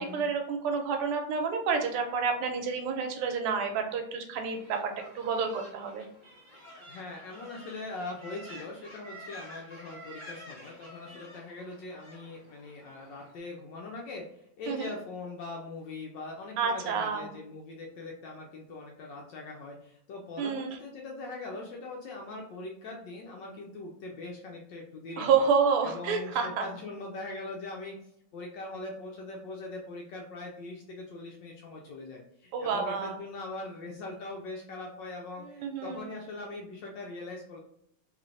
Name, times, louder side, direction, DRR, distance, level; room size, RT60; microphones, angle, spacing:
voice 1, 0.0-6.0 14.7-14.9 16.6-17.3 20.4-20.8 25.2-26.7 32.5-33.2 35.6-36.1, right 5 dB, 90° right, 5 dB, 1.6 m, -29 dB
sound 1, 4.5-13.4, equal, 25° right, 0.6 m, -50 dB
voice 2, 6.8-25.5 25.8-28.0 28.3-37.6, left 2 dB, 75° left, 0 dB, 1.1 m, -41 dB
3.3 x 3.2 x 2.5 m, 0.72 s
omnidirectional pair, 2.4 m